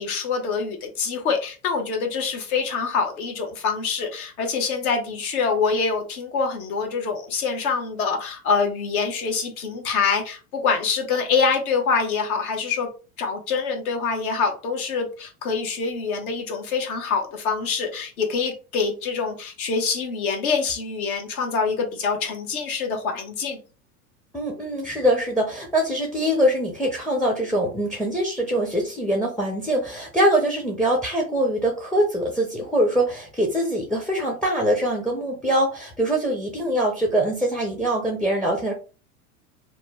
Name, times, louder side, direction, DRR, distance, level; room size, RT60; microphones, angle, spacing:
voice 1, 0.0-12.9 13.2-23.6, left 5 dB, 70° left, 1.1 m, -25 dB
voice 2, 24.3-38.7, right 1 dB, ahead, 0.4 m, -23 dB
3.0 x 2.1 x 3.4 m
hypercardioid pair, 95°, 44 cm